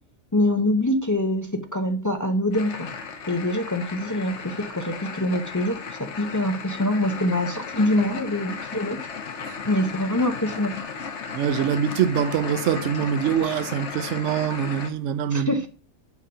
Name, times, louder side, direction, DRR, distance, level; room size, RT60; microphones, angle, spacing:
voice 1, 0.3-2.9 3.3-9.0 9.7-10.7 15.3-15.7, left 1 dB, 30° left, 0.3 m, -24 dB
sound 1, 2.5-14.9, left 5 dB, 60° left, 1.1 m, -35 dB
voice 2, 11.3-15.5, right 8 dB, 70° right, 0.9 m, -24 dB
7.1 x 3.8 x 5.5 m
omnidirectional pair, 1.4 m